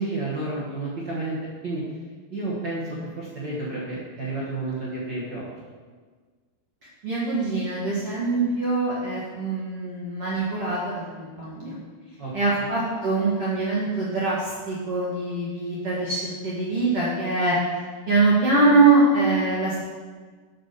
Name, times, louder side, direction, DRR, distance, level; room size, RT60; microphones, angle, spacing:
voice 1, 0.0-2.0 2.3-5.5 12.2-12.7, right 2 dB, 80° right, -7 dB, 1.0 m, -31 dB
voice 2, 7.0-11.8 12.3-17.6 18.1-19.8, right 3 dB, 50° right, -7 dB, 2.0 m, -23 dB
6.7 x 6.0 x 6.6 m, 1.5 s
omnidirectional pair, 4.5 m